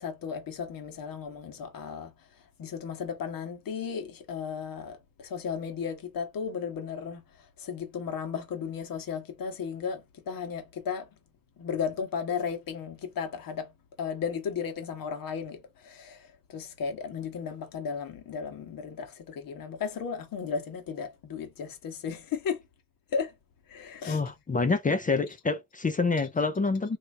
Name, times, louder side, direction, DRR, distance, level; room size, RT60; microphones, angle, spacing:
voice 1, 0.0-2.1 2.6-7.2 7.6-11.1 11.6-13.7 14.0-16.2 16.5-22.6 23.1-23.3 23.7-24.2, left 6 dB, 50° left, 1.5 m, -35 dB
voice 2, 24.1-27.0, left 4 dB, 20° left, 0.6 m, -27 dB
3.0 x 2.7 x 3.4 m
supercardioid pair, 80°, 43 cm